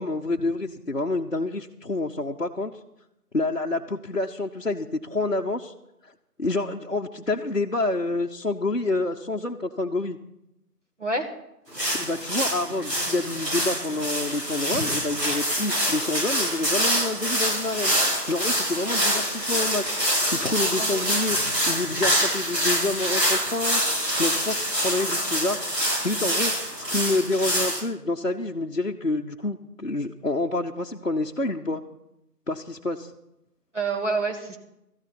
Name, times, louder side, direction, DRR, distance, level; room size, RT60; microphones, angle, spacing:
voice 1, 0.0-2.8 3.3-5.7 6.0-6.1 6.4-10.2 11.9-17.9 18.3-19.8 20.3-21.4 21.7-23.8 24.2-25.6 26.0-26.5 26.9-31.8 32.5-33.1, left 2 dB, 55° left, -1 dB, 0.8 m, -28 dB
voice 2, 11.0-11.3 14.7-15.0 20.8-21.0 33.7-34.6, right 3 dB, 50° right, 3 dB, 1.9 m, -28 dB
sound 1, 11.7-27.8, equal, 90° right, 7.1 m, -25 dB
13.5 x 6.6 x 9.8 m, 0.85 s
figure-of-eight pair, 180°, 48 cm